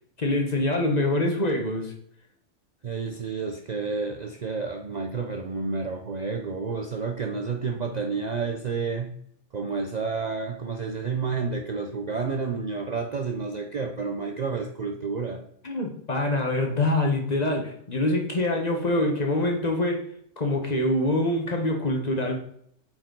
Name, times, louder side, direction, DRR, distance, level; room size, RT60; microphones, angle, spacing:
voice 1, 0.2-1.9 15.6-20.0 20.4-22.4, left 1 dB, 35° left, 2 dB, 1.2 m, -25 dB
voice 2, 2.8-9.2 9.5-15.4, right 4 dB, 45° right, 3 dB, 0.6 m, -30 dB
8.6 x 4.5 x 3.9 m, 0.67 s
omnidirectional pair, 1.3 m